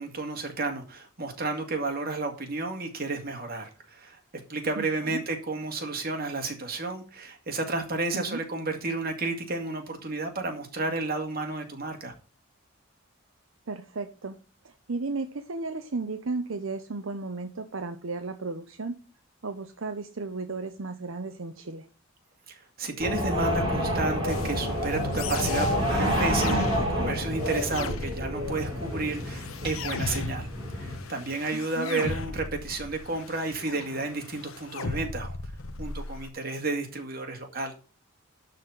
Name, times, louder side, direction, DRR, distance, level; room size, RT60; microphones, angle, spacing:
voice 1, 0.0-4.2 4.5-12.1 22.8-30.5 30.8-35.4 35.8-37.7, right 3 dB, 45° right, 3 dB, 2.2 m, -32 dB
voice 2, 4.8-5.2 8.1-8.4 13.7-14.3 14.6-19.0 19.4-21.9 31.5-32.0, right 3 dB, 75° right, 7 dB, 0.8 m, -34 dB
sound 1, 23.0-31.0, equal, 25° right, 3.4 m, -28 dB
Alien Phaser Impact, 24.3-36.3, left 3 dB, 85° left, 1.0 m, -37 dB
11.5 x 4.3 x 7.4 m, 0.35 s
head